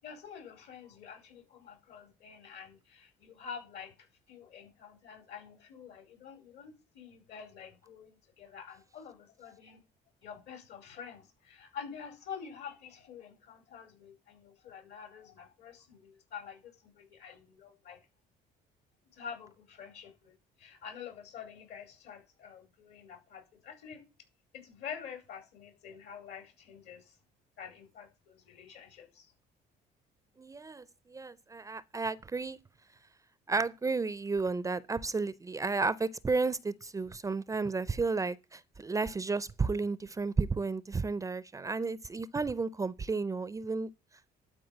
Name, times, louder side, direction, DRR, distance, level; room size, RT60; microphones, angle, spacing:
voice 1, 0.0-9.8 10.2-18.0 19.1-20.3 20.6-24.0 24.5-27.1 27.6-29.3, left 7 dB, 75° left, 4.8 m, -47 dB
voice 2, 30.4-32.6 33.5-43.9, right 4 dB, 20° right, 0.5 m, -32 dB
11.5 x 4.6 x 7.7 m
cardioid pair, 110°, 17 cm